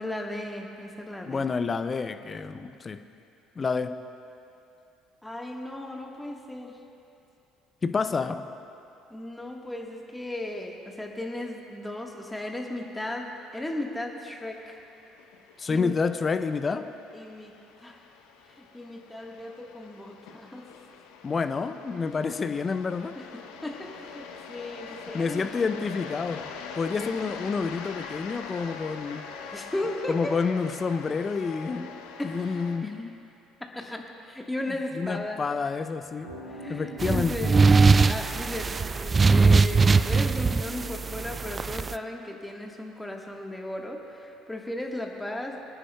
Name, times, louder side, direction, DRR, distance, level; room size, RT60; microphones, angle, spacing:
voice 1, 0.0-1.4 5.2-6.8 9.1-14.8 15.7-16.0 16.7-16.8 17.1-18.0 18.5-20.7 22.0-22.2 23.2-25.5 27.0-27.1 29.5-30.4 32.2-32.9 33.7-35.5 36.5-37.7 38.0-45.6, left 1 dB, 10° left, 1 dB, 1.4 m, -36 dB
voice 2, 1.3-3.0 3.6-3.9 7.8-8.4 15.6-16.9 21.2-23.1 25.1-26.5 26.7-29.2 30.1-31.9 32.2-33.1 35.0-36.3 36.7-37.5, left 5 dB, 30° left, 9 dB, 0.6 m, -28 dB
sound 1, 14.4-32.8, left 5 dB, 70° left, 0.8 m, -43 dB
sound 2, 36.0-42.0, right 1 dB, 90° right, 2.1 m, -48 dB
sound 3, 37.0-41.9, right 4 dB, 30° right, 0.3 m, -21 dB
26.0 x 9.8 x 2.3 m, 2.7 s
hypercardioid pair, 55°, 0 cm